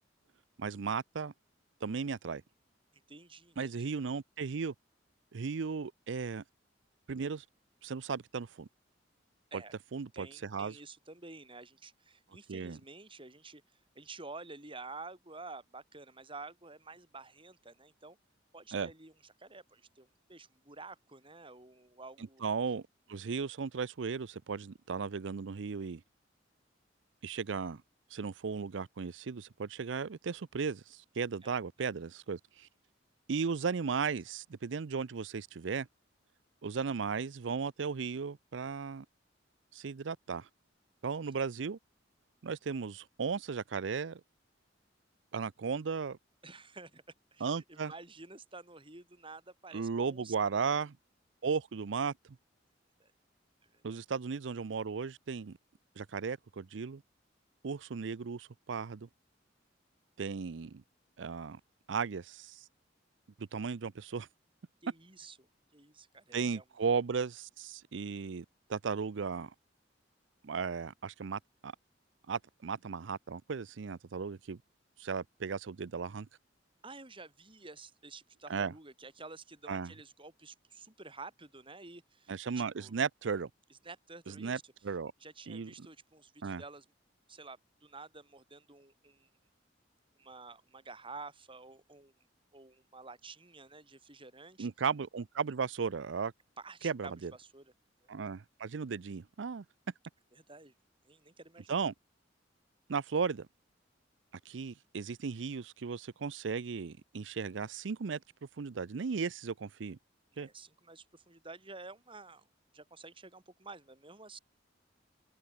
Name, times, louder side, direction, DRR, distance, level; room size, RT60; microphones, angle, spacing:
voice 1, 0.6-1.3 1.8-2.4 3.6-4.7 5.3-6.4 7.1-7.4 7.8-8.7 9.5-9.6 9.9-10.8 12.5-12.8 18.7-18.9 22.4-22.8 23.1-26.0 27.2-27.8 28.1-32.7 33.3-35.9 36.6-39.1 39.7-40.5 41.0-41.8 42.4-44.2 45.3-46.2 47.4-47.9 49.7-51.0 51.4-52.1 53.8-55.6 56.0-57.0 57.6-59.1 60.2-60.8 61.2-61.6 61.9-62.6 63.4-64.3 66.3-69.5 70.4-71.7 72.3-74.6 75.0-76.3 78.5-78.7 79.7-79.9 82.3-83.5 84.3-85.1 85.5-85.9 86.4-86.6 94.6-96.3 96.8-97.3 98.1-99.6 101.7-101.9 102.9-103.5 104.5-108.2 108.6-110.0 110.4-110.5, right 5 dB, 75° right, 0.5 m, -36 dB
voice 2, 2.9-3.9 9.5-9.7 10.1-13.6 13.9-18.2 18.5-22.4 31.4-31.5 31.8-31.9 46.4-47.0 47.3-50.3 50.6-50.8 53.0-53.1 53.6-54.0 64.8-66.6 76.8-82.9 83.7-84.7 85.2-86.8 87.3-89.3 90.2-92.1 92.5-94.7 96.6-97.7 100.3-100.7 101.1-101.7 110.3-112.5 112.7-114.4, right 3 dB, 30° right, 7.9 m, -50 dB
head